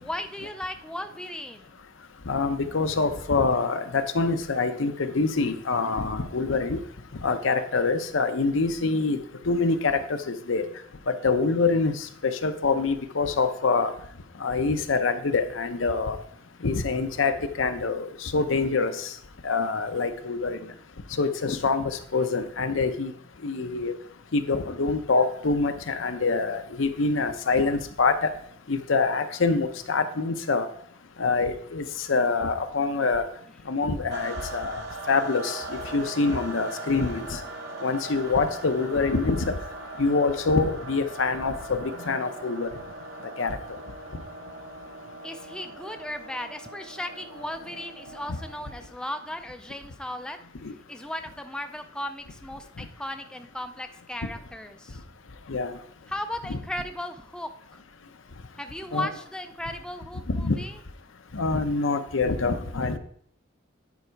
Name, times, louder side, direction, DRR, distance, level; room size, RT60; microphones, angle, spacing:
voice 1, 0.0-1.7 45.2-50.4 50.9-55.0 56.1-57.8 58.6-60.8, left 1 dB, 5° left, 7 dB, 0.4 m, -36 dB
voice 2, 2.3-6.8 7.2-9.2 9.4-10.0 10.3-10.7 11.2-13.9 14.4-16.2 16.6-19.1 19.4-20.6 21.2-23.1 23.4-23.9 24.3-28.3 28.7-30.7 31.2-33.2 33.7-35.6 35.9-37.4 37.8-39.5 40.0-42.7 43.4-43.6 48.3-48.4 50.6-50.7 52.8-52.9 55.5-55.7 58.9-59.1 60.3-60.6 61.3-63.0, left 4 dB, 80° left, 8 dB, 0.8 m, -25 dB
sound 1, 34.1-48.9, right 2 dB, 60° right, 1.2 m, -40 dB
9.6 x 4.8 x 4.6 m, 0.62 s
head